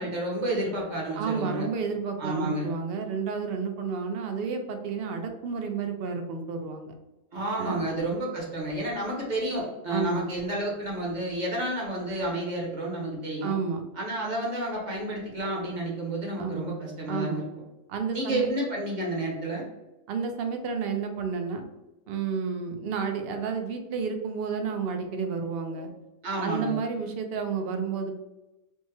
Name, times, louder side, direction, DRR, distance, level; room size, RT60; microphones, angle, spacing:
voice 1, 0.0-1.7 2.2-2.7 7.3-13.6 14.0-17.4 18.1-19.7 26.2-26.8, right 1 dB, 40° right, -3 dB, 0.9 m, -30 dB
voice 2, 1.1-6.9 7.6-7.9 9.9-10.2 13.4-13.8 16.4-16.7 17.1-17.4 17.9-18.5 20.1-21.7 22.1-25.9 26.4-28.2, right 5 dB, 65° right, 5 dB, 0.6 m, -31 dB
3.4 x 2.0 x 3.1 m, 1.0 s
omnidirectional pair, 1.3 m